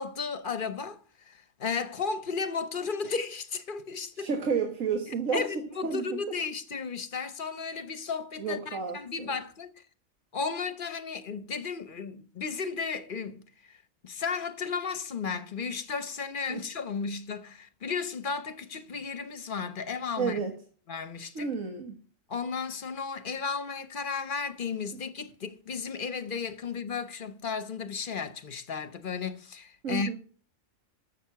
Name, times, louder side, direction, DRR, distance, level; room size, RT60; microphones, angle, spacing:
voice 1, 0.0-4.3 5.0-9.7 10.3-13.8 14.0-20.4 20.9-21.5 22.3-30.1, left 5 dB, 45° left, 0.9 m, -34 dB
voice 2, 4.2-5.4 5.8-6.2 8.4-9.4 16.5-16.6 20.2-20.5 21.4-21.9 29.8-30.1, right 6 dB, 90° right, 1.9 m, -31 dB
12.0 x 7.2 x 5.7 m
omnidirectional pair, 1.3 m